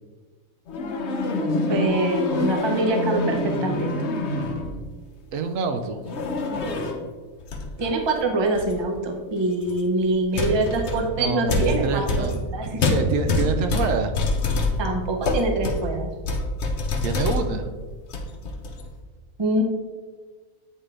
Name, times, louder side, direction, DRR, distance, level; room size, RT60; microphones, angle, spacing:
sound 1, 0.7-4.9 6.0-7.1 7.4-7.9 8.5-8.8 9.7-9.8 10.3-17.7 18.0-18.9, left 2 dB, 60° left, 0.9 m, -26 dB
voice 1, 1.7-3.9 7.8-12.3 12.5-12.8 14.8-16.1 19.4-19.6, right 2 dB, 30° right, 3 dB, 0.5 m, -24 dB
voice 2, 5.3-6.0 10.3-10.6 11.0-12.4 12.6-14.1 17.0-17.7, right 4 dB, 70° right, 6 dB, 0.9 m, -27 dB
8.8 x 3.7 x 3.2 m, 1.4 s
omnidirectional pair, 1.4 m